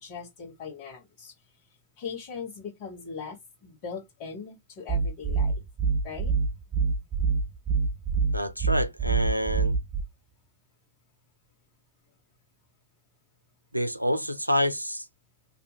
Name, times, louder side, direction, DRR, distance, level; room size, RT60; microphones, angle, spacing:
voice 1, 0.0-1.3 2.0-5.6 6.0-6.3, left 6 dB, 50° left, 1.3 m, -40 dB
sound 1, 4.9-10.0, right 5 dB, 25° right, 0.3 m, -25 dB
voice 2, 8.3-9.8 13.7-15.0, equal, 90° right, 0.5 m, -27 dB
4.1 x 2.6 x 2.8 m
figure-of-eight pair, 90°, 0 cm